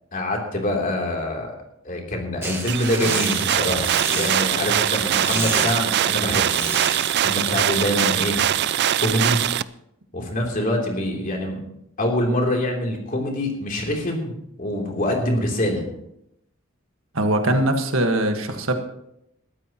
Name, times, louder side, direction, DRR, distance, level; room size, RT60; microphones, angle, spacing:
voice 1, 0.1-1.5 1.8-6.6 7.2-8.4 9.0-9.4 10.1-11.6 12.0-15.9, left 1 dB, 40° left, 0 dB, 3.2 m, -25 dB
sound 1, 2.4-7.4, right 2 dB, 10° right, 1.5 m, -31 dB
sound 2, 2.7-9.6, right 11 dB, 55° right, 0.4 m, -22 dB
voice 2, 17.1-18.7, right 1 dB, 70° right, 5 dB, 1.6 m, -21 dB
21.0 x 13.5 x 3.0 m, 0.79 s
head